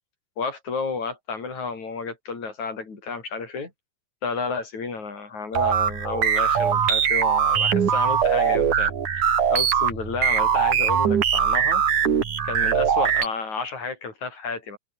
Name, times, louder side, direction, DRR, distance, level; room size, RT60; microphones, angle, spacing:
voice 1, 0.4-3.7 4.2-11.8 12.4-14.8, left 4 dB, 50° left, 6.6 m, -31 dB
sound 1, 5.5-13.3, right 7 dB, 55° right, 4.0 m, -21 dB
open air
omnidirectional pair, 4.4 m